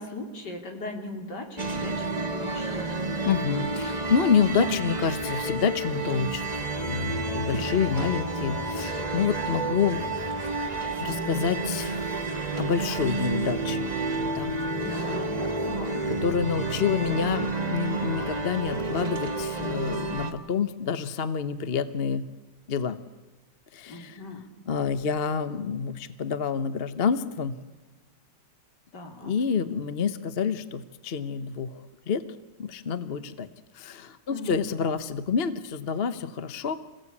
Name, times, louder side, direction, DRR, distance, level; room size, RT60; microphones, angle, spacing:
voice 1, 0.0-3.0 9.6-10.2 14.8-16.1 16.6-17.3 23.9-24.5 28.9-29.3 34.3-34.5, left 2 dB, 65° left, 4 dB, 3.7 m, -39 dB
sound 1, 1.6-20.3, right 2 dB, 25° right, 1.5 m, -30 dB
voice 2, 3.2-10.0 10.4-12.1 12.6-13.9 14.3-14.6 14.9-15.2 16.1-22.3 22.7-23.0 23.7-24.2 24.7-27.6 29.2-32.2 32.6-33.5 33.7-36.8, left 6 dB, 40° left, 13 dB, 0.9 m, -28 dB
27.0 x 16.5 x 8.5 m, 1.3 s
omnidirectional pair, 2.0 m